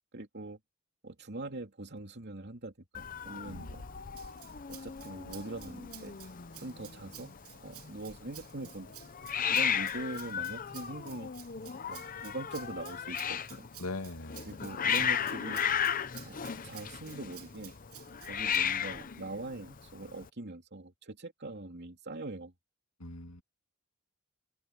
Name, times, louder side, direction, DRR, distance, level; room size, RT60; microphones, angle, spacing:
voice 1, 0.1-0.6 1.0-3.8 4.7-6.2 6.6-7.3 7.6-9.0 9.5-11.3 11.9-13.7 14.5-15.6 16.2-17.7 18.3-22.5, right 2 dB, 50° right, 3.0 m, -42 dB
Hiss, 2.9-20.3, left 8 dB, 40° left, 0.7 m, -35 dB
voice 2, 3.4-3.8 13.8-14.6 23.0-23.4, left 2 dB, 80° left, 2.2 m, -41 dB
Rattle (instrument), 4.2-18.6, right 14 dB, 85° right, 3.3 m, -53 dB
open air
head